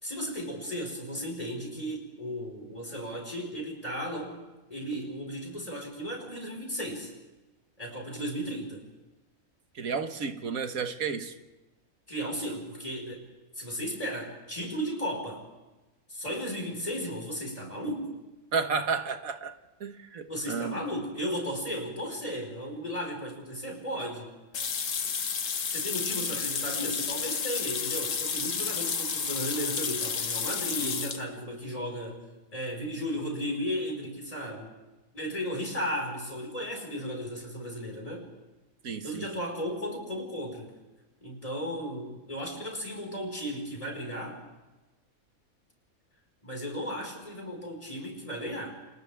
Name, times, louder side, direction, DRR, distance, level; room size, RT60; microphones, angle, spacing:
voice 1, 0.0-4.4 4.7-7.1 7.8-8.8 12.1-13.2 13.5-15.4 16.1-18.1 20.3-24.3 25.7-32.2 32.5-34.7 35.1-38.3 39.0-40.7 41.2-44.4 46.4-48.8, equal, 25° left, 5.0 m, -35 dB
voice 2, 9.8-11.3 18.5-19.5 19.8-20.7 38.8-39.3, right 5 dB, 70° right, 1.7 m, -32 dB
sound 1, 24.5-31.2, left 6 dB, 60° left, 1.5 m, -31 dB
30.0 x 28.0 x 3.5 m
omnidirectional pair, 1.5 m